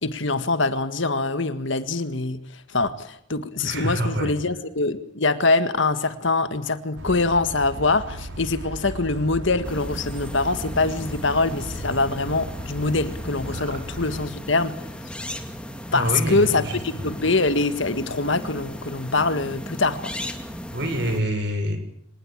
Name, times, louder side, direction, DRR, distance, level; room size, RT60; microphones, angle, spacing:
voice 1, 0.0-14.8 15.9-20.1, left 3 dB, 70° left, 11 dB, 1.8 m, -24 dB
voice 2, 3.6-4.3 13.5-13.7 15.9-17.1 20.7-21.8, equal, 55° right, 7 dB, 6.4 m, -26 dB
sound 1, 7.0-14.3, equal, 80° right, 5.3 m, -36 dB
sound 2, 9.6-21.2, equal, 5° left, 2.4 m, -37 dB
25.0 x 19.5 x 8.8 m, 0.69 s
head